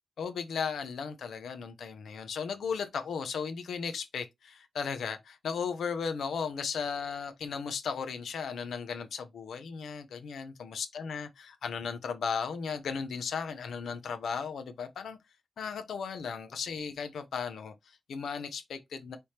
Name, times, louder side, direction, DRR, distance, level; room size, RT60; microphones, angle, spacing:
voice 1, 0.2-15.2 15.6-19.2, left 6 dB, 90° left, 0.7 m, -36 dB
4.3 x 3.4 x 3.2 m
wide cardioid pair, 175°, 0 cm